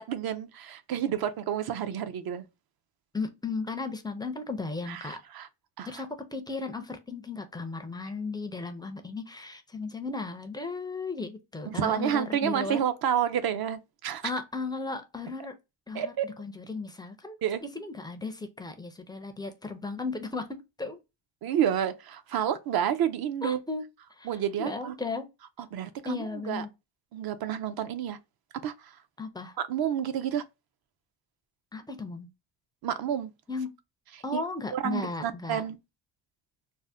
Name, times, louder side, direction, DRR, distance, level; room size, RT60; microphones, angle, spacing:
voice 1, 0.0-2.5 4.9-5.5 5.8-5.9 11.7-14.3 15.9-16.3 17.4-17.6 21.4-23.6 24.2-24.9 25.7-26.6 27.1-28.2 28.6-29.0 29.6-30.4 32.8-33.3 34.3-34.4 34.7-35.8, right 9 dB, 55° right, 0.5 m, -30 dB
voice 2, 3.1-5.2 5.8-12.8 14.2-15.5 15.9-21.0 23.4-23.8 24.2-24.3 24.6-25.3 26.0-26.7 29.2-29.6 31.7-32.3 33.5-33.7 34.2-35.6, left 3 dB, 10° left, 0.4 m, -35 dB
2.6 x 2.0 x 3.3 m
cardioid pair, 100°, 46 cm